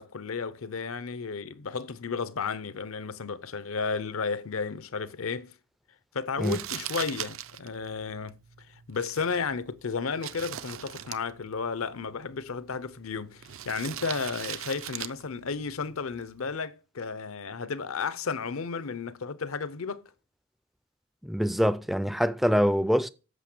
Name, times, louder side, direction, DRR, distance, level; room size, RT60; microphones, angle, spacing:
voice 1, 0.0-5.5 6.1-8.4 8.9-20.0, left 5 dB, 75° left, 0.7 m, -33 dB
Crumpling crinkling, 6.4-16.6, right 11 dB, 70° right, 0.6 m, -42 dB
voice 2, 21.2-23.1, equal, ahead, 0.4 m, -24 dB
8.2 x 6.6 x 6.0 m
head